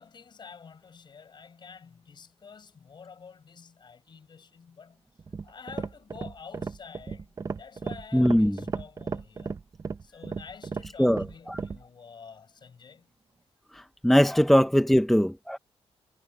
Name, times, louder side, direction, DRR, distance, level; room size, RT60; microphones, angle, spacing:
voice 1, 0.0-5.0 5.4-9.5 10.0-13.1, left 6 dB, 45° left, 6.2 m, -48 dB
sound 1, 5.2-11.8, right 5 dB, 30° right, 0.9 m, -35 dB
voice 2, 8.1-8.6 11.0-11.2 14.0-15.6, equal, ahead, 0.5 m, -20 dB
wide cardioid pair, 165°, 11 cm